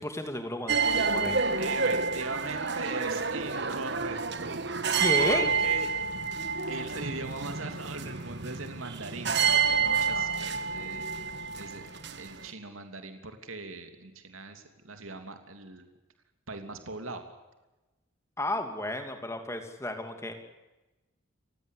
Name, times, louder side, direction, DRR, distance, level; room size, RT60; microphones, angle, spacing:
voice 1, 0.0-1.4 5.0-5.5 18.4-20.3, left 1 dB, 15° left, 6 dB, 2.7 m, -32 dB
sound 1, 0.7-12.5, right 5 dB, 55° right, 1.5 m, -29 dB
voice 2, 1.6-4.6 5.1-5.9 6.7-11.1 11.5-15.9 16.5-17.2, right 3 dB, 80° right, 6 dB, 3.0 m, -40 dB
30.0 x 16.0 x 8.3 m, 1.1 s
head